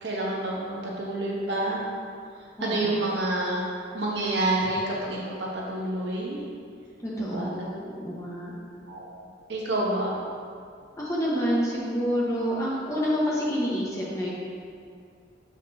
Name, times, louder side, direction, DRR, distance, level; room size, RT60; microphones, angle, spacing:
voice 1, 0.0-1.8 2.3-3.6 3.9-6.4 7.2-7.6 8.9-9.2 9.5-10.2, right 2 dB, 70° right, -4 dB, 1.1 m, -28 dB
voice 2, 2.6-3.0 7.0-8.5 11.0-14.3, equal, 15° left, -6 dB, 1.1 m, -28 dB
7.0 x 5.1 x 2.7 m, 2.2 s
head